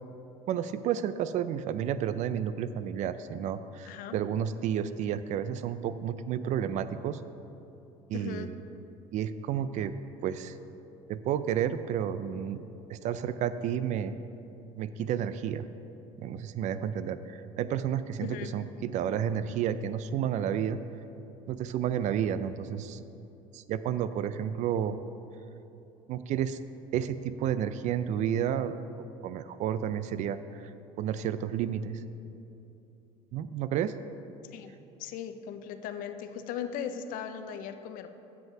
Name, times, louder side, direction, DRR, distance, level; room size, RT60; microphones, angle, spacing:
voice 1, 0.5-7.2 8.1-8.5 9.1-9.9 10.2-10.6 11.1-12.6 12.9-14.1 14.8-15.7 16.2-20.8 21.5-23.0 23.5-25.0 26.1-26.6 26.9-30.7 31.0-32.0 33.3-33.9, right 9 dB, 55° right, 13 dB, 0.4 m, -31 dB
voice 2, 3.9-4.2 8.1-8.5 18.2-18.5 34.5-34.7 35.0-38.1, left 8 dB, 65° left, 9 dB, 0.5 m, -38 dB
7.8 x 5.3 x 5.8 m, 2.8 s
cardioid pair, 120°, 15 cm